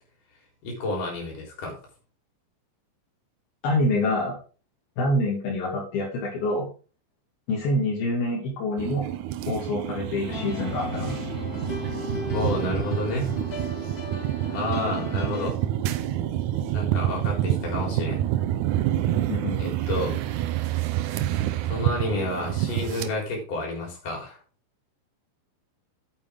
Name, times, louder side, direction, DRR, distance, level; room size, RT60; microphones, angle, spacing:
voice 1, 0.6-1.8 12.3-13.4 14.5-15.6 16.7-18.2 19.6-20.2 21.7-24.4, left 2 dB, 60° left, 0 dB, 5.3 m, -30 dB
voice 2, 3.6-4.4 5.0-6.7 7.5-9.1 9.5-11.2 19.3-19.6, left 1 dB, 80° left, -4 dB, 4.3 m, -26 dB
sound 1, 8.8-23.1, right 12 dB, 75° right, 1.8 m, -28 dB
sound 2, 10.3-15.5, left 4 dB, 35° left, 1.7 m, -36 dB
9.3 x 9.0 x 3.6 m, 0.36 s
omnidirectional pair, 4.3 m